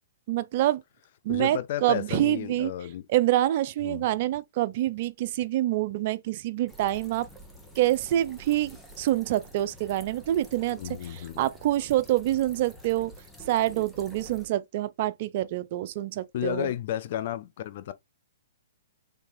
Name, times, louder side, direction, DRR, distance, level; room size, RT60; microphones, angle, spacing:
voice 1, 0.3-0.8 1.2-2.7 3.1-7.3 7.8-10.8 11.1-13.1 13.5-16.7, right 14 dB, 50° right, 0.4 m, -26 dB
voice 2, 1.3-3.1 3.8-4.0 10.8-11.4 16.3-17.9, left 11 dB, 55° left, 0.4 m, -32 dB
sound 1, 6.7-14.5, equal, 5° left, 0.8 m, -49 dB
3.3 x 3.2 x 2.6 m
hypercardioid pair, 125°, 0 cm